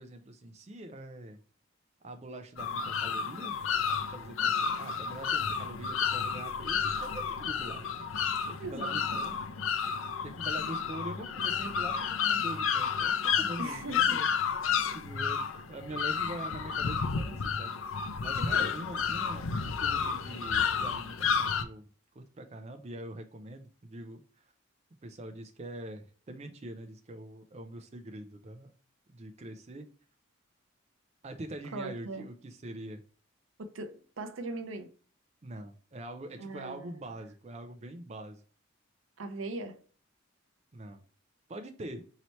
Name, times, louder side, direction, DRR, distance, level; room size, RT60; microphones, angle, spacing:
voice 1, 0.0-1.4 2.0-3.6 3.9-9.4 10.2-14.3 14.6-15.4 15.7-17.7 18.2-21.9 22.1-24.5 25.0-28.7 29.1-29.9 31.2-33.0 35.4-38.4 40.7-41.0 41.5-42.0, right 1 dB, 30° right, 0.4 m, -44 dB
sound 1, 2.6-21.6, left 6 dB, 80° left, 0.5 m, -31 dB
voice 2, 8.6-9.2 13.6-14.2 18.3-18.7 31.7-32.3 33.6-34.9 36.4-37.0 39.2-39.8, right 2 dB, 75° right, 0.6 m, -40 dB
4.3 x 2.8 x 3.0 m
head